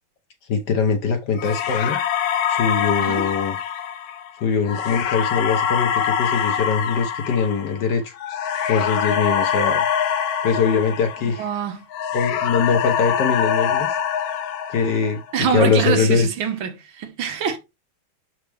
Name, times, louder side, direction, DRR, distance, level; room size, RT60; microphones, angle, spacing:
voice 1, 0.5-2.0 2.5-3.6 4.4-8.1 8.7-9.8 10.4-11.5 12.1-13.9 14.7-15.2 15.5-16.3, left 5 dB, 60° left, 1.3 m, -22 dB
sound 1, 1.4-11.6 11.9-15.3, left 8 dB, 85° left, 0.8 m, -24 dB
voice 2, 11.4-11.8 15.3-17.6, right 7 dB, 70° right, 1.7 m, -25 dB
6.4 x 4.5 x 3.3 m
omnidirectional pair, 2.3 m